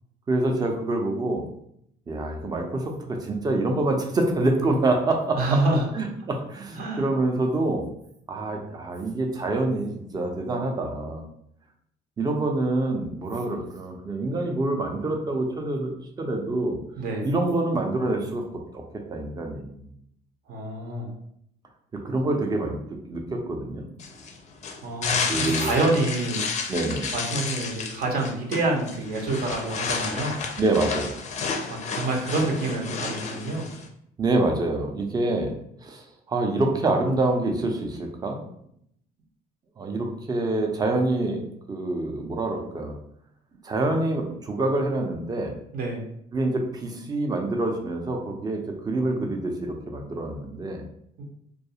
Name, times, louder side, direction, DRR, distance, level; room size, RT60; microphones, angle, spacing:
voice 1, 0.3-1.5 2.1-5.6 5.9-7.9 8.3-11.2 12.2-16.8 17.2-18.5 18.7-19.9 21.9-22.8 23.1-23.9 25.3-25.7 26.7-27.1 30.6-31.1 34.2-35.5 35.8-38.4 39.8-43.0 43.6-45.5 46.3-50.8, right 2 dB, 25° right, 2 dB, 0.5 m, -26 dB
voice 2, 5.4-5.9 6.8-7.1 17.0-17.3 20.5-21.1 24.8-26.5 27.1-30.4 31.7-33.7 45.7-46.0 51.2-51.3, right 2 dB, 60° right, 0 dB, 0.7 m, -27 dB
sound 1, 24.0-33.9, left 5 dB, 45° left, 0.4 m, -31 dB
2.3 x 2.3 x 2.7 m, 0.72 s
cardioid pair, 110°, 17 cm